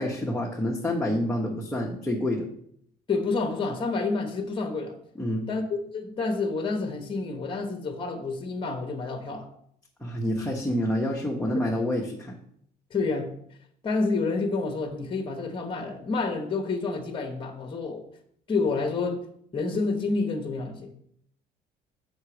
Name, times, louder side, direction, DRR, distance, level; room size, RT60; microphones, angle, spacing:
voice 1, 0.0-2.5 5.2-5.5 10.0-12.4, left 1 dB, 5° left, 1.2 m, -28 dB
voice 2, 3.1-5.0 5.5-9.5 12.9-13.3 13.8-18.0 18.5-19.2 19.5-20.9, left 3 dB, 30° left, 1.2 m, -29 dB
7.3 x 6.0 x 5.0 m
cardioid pair, 110°, 17 cm